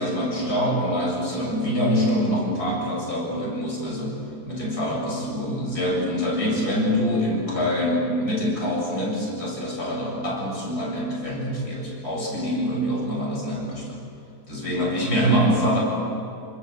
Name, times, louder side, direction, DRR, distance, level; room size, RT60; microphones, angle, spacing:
voice 1, 0.0-4.1 4.5-13.8 14.5-15.8, equal, 80° left, -2 dB, 8.2 m, -25 dB
29.0 x 25.0 x 8.1 m, 2.8 s
omnidirectional pair, 1.6 m